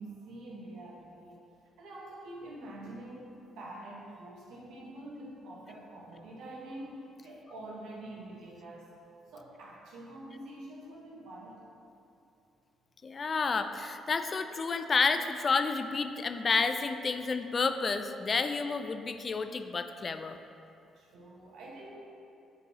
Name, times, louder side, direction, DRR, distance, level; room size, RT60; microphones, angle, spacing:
voice 1, 0.0-1.4 1.8-8.9 9.3-11.6 20.9-22.0, right 1 dB, 70° right, -3 dB, 1.4 m, -46 dB
voice 2, 13.0-20.4, left 4 dB, 40° left, 8 dB, 0.4 m, -30 dB
9.3 x 5.3 x 3.0 m, 2.7 s
hypercardioid pair, 45°, 0 cm